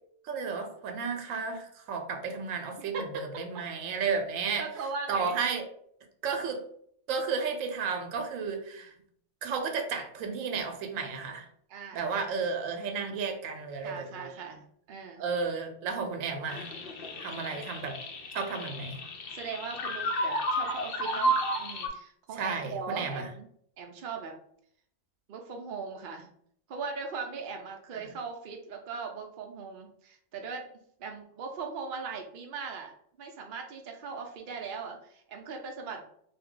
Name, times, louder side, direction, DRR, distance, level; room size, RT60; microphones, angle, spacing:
voice 1, 0.2-4.6 5.1-5.7 6.2-6.6 7.1-8.9 9.4-11.5 11.9-14.4 15.2-16.7 17.2-18.0 18.3-19.0 22.4-23.3 27.9-28.1, right 5 dB, 80° right, 5 dB, 1.0 m, -33 dB
voice 2, 2.9-3.4 4.5-5.4 11.7-12.1 13.8-15.2 17.5-17.6 19.3-23.5 23.8-24.3 25.3-26.3 26.7-30.6 31.0-32.9 33.2-36.0, right 5 dB, 60° right, 2 dB, 0.5 m, -39 dB
sound 1, 16.5-21.9, right 1 dB, 60° left, 0.6 m, -32 dB
2.6 x 2.2 x 3.6 m, 0.66 s
omnidirectional pair, 1.4 m